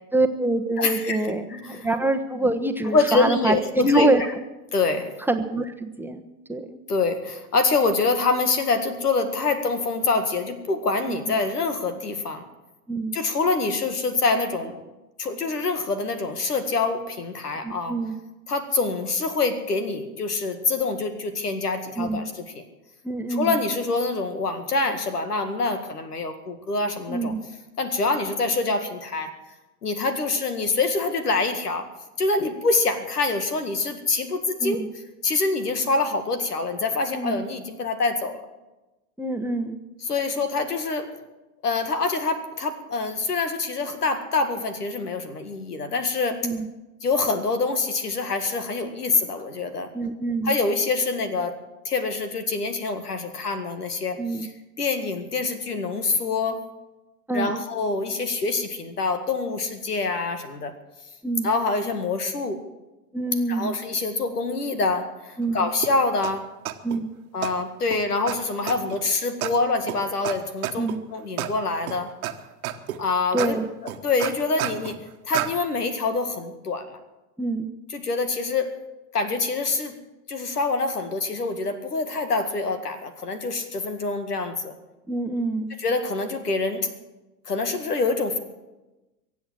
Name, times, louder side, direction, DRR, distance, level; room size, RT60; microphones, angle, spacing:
voice 1, 0.1-4.2 5.3-6.2 6.5-6.8 11.1-11.3 12.9-13.2 17.6-18.2 22.0-22.2 23.0-23.6 27.1-27.4 34.6-34.9 37.1-37.4 39.2-39.8 46.4-46.7 49.9-50.5 54.2-54.5 57.3-57.6 61.2-61.5 63.1-63.8 65.4-65.7 66.8-67.1 70.8-71.0 73.3-73.7 77.4-77.7 85.1-85.7, right 2 dB, 5° right, 5 dB, 1.1 m, -25 dB
voice 2, 0.8-1.9 2.9-4.3 4.7-5.1 6.9-12.4 13.1-14.8 15.2-18.0 18.5-22.6 23.3-27.3 27.8-29.3 29.8-31.9 32.2-34.8 35.2-38.4 40.0-41.1 41.6-46.5 47.0-49.9 50.4-51.6 51.9-54.5 54.8-56.6 57.3-60.7 61.4-62.6 63.5-66.5 67.3-72.1 73.0-73.6 74.0-75.0 75.3-76.9 77.9-78.7 79.1-79.9 80.3-84.7 85.8-86.9 87.5-88.4, left 3 dB, 80° left, 9 dB, 2.0 m, -25 dB
sound 1, 65.8-65.9 66.2-66.3 66.6-67.0 67.4-67.5 67.9-68.0 68.3-68.4 68.7-69.0 69.4-69.5 69.9-70.0 70.2-70.3 70.6-71.0 71.4-71.5 71.9-72.3 72.6-73.0 73.4-73.5 73.9-75.0 75.3-75.5, right 14 dB, 65° right, 1.4 m, -29 dB
23.0 x 8.4 x 7.5 m, 1.1 s
figure-of-eight pair, 85°, 46 cm